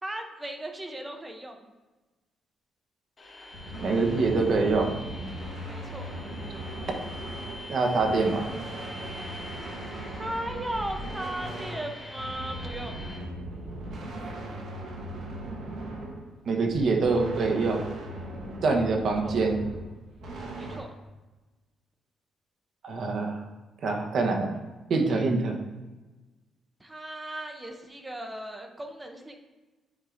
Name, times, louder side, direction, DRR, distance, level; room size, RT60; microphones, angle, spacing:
voice 1, 0.0-1.7 3.7-3.9 5.7-6.2 10.2-13.1 19.2-19.4 20.6-20.9 26.8-29.4, right 1 dB, 15° right, 4 dB, 0.7 m, -37 dB
sound 1, 3.2-13.2, left 1 dB, 30° left, 1.4 m, -45 dB
sound 2, 3.5-20.8, right 1 dB, 75° right, 1.3 m, -38 dB
voice 2, 3.8-4.9 7.7-8.5 16.5-17.8 18.6-19.6 22.8-23.4 23.8-24.5 24.9-25.6, right 3 dB, 55° right, 3 dB, 1.0 m, -25 dB
9.6 x 4.6 x 2.6 m, 1.2 s
cardioid pair, 135°, 0 cm